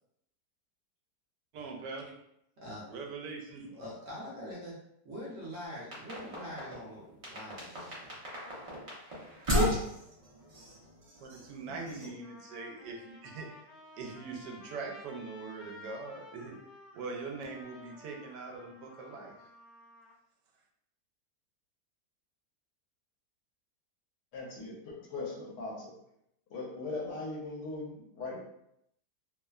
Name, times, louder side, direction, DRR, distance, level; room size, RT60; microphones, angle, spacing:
voice 1, 1.5-2.1 2.9-3.7 11.2-13.5 14.0-16.6 16.9-19.3, right 4 dB, 80° right, 1 dB, 1.2 m, -42 dB
voice 2, 2.6-2.9 3.7-4.8 5.0-8.2, equal, 60° right, -5 dB, 0.9 m, -44 dB
sound 1, 5.7-6.9 7.2-12.1, equal, 40° right, 0.4 m, -35 dB
Trumpet, 11.5-11.6 12.2-20.2, left 2 dB, 55° left, 0.8 m, -53 dB
voice 3, 24.3-25.9 26.5-28.4, left 3 dB, 75° left, -2 dB, 1.3 m, -39 dB
3.1 x 2.1 x 2.3 m, 0.77 s
omnidirectional pair, 1.8 m